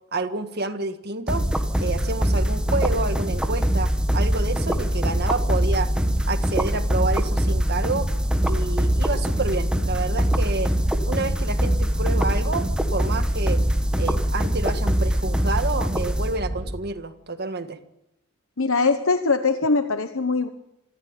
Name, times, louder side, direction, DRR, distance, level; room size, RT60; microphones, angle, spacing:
voice 1, 0.1-1.4 1.8-5.9 6.3-8.1 8.5-10.7 11.1-13.6 14.0-17.8, right 3 dB, 50° right, 8 dB, 1.8 m, -29 dB
sound 1, 1.3-16.7, equal, 5° right, 1.6 m, -23 dB
voice 2, 18.6-20.5, left 4 dB, 65° left, 9 dB, 1.1 m, -21 dB
26.0 x 14.5 x 9.0 m, 0.87 s
head